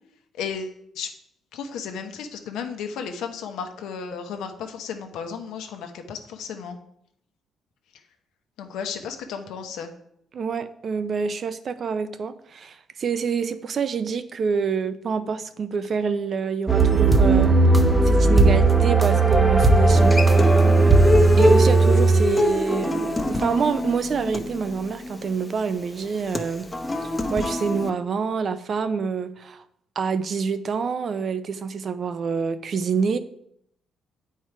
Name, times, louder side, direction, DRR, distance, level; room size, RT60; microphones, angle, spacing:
voice 1, 0.3-1.1 1.5-6.8 8.6-9.9, left 6 dB, 85° left, 5 dB, 1.0 m, -34 dB
voice 2, 10.3-17.6 18.0-20.9 21.4-26.7 27.0-29.6 30.0-33.2, right 5 dB, 50° right, 12 dB, 0.6 m, -27 dB
sound 1, 16.7-22.8, right 3 dB, 15° right, 0.8 m, -16 dB
Human voice / Acoustic guitar, 19.9-27.9, left 2 dB, 20° left, 0.8 m, -25 dB
8.8 x 4.6 x 4.6 m, 0.73 s
cardioid pair, 90°, 0 cm